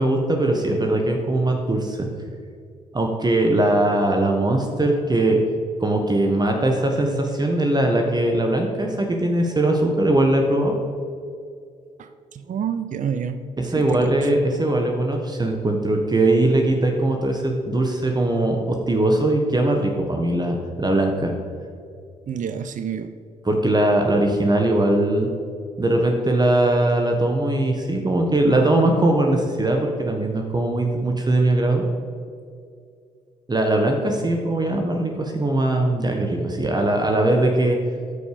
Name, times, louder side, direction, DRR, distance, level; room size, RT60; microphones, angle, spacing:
voice 1, 0.0-2.1 2.9-5.4 5.8-10.8 13.6-21.3 23.4-25.3 25.8-31.8 33.5-37.8, right 1 dB, 25° right, 2 dB, 1.4 m, -20 dB
voice 2, 12.0-13.4 13.6-14.3 22.3-23.1, right 7 dB, 50° right, 10 dB, 0.6 m, -29 dB
12.5 x 5.2 x 5.0 m, 2.3 s
hypercardioid pair, 50°, 17 cm